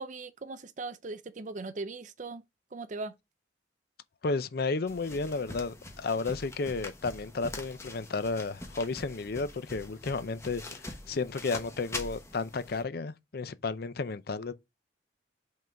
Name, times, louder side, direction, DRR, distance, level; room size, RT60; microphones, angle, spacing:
voice 1, 0.0-2.4 2.7-3.1, right 3 dB, 45° right, 0.5 m, -39 dB
voice 2, 4.2-14.5, left 3 dB, 55° left, 0.5 m, -33 dB
sound 1, 4.9-12.8, left 2 dB, 15° left, 1.1 m, -44 dB
5.3 x 3.8 x 5.8 m
head